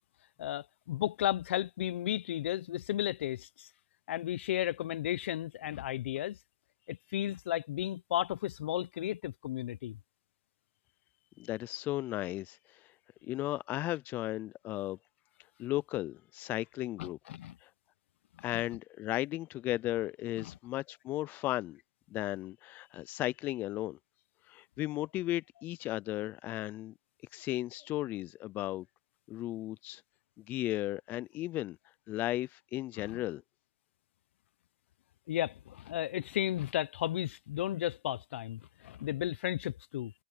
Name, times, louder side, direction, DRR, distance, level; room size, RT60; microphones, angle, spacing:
voice 1, 0.4-3.7 4.1-6.4 6.9-10.0 17.0-17.6 18.4-18.6 20.4-20.5 33.0-33.2 35.3-40.1, left 12 dB, 70° left, 0.9 m, -34 dB
voice 2, 11.4-12.9 13.2-15.0 15.6-17.2 17.6-17.7 18.4-21.8 22.1-24.0 24.5-26.9 27.3-28.9 29.3-30.0 30.4-31.8 32.1-33.4, left 15 dB, 25° left, 0.3 m, -35 dB
hypercardioid pair, 140°, 7 cm